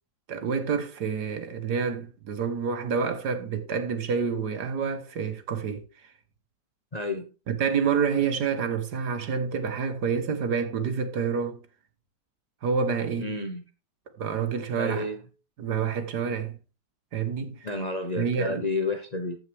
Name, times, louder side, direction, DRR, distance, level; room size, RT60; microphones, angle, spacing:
voice 1, 0.3-5.8 7.5-11.6 12.6-13.3 14.2-15.1 15.6-16.6 17.1-17.6 18.2-18.7, right 6 dB, 65° right, 1.8 m, -28 dB
voice 2, 6.9-7.3 13.2-13.6 14.8-15.2 17.6-19.4, left 2 dB, 30° left, 0.8 m, -30 dB
14.0 x 6.0 x 3.5 m
omnidirectional pair, 1.9 m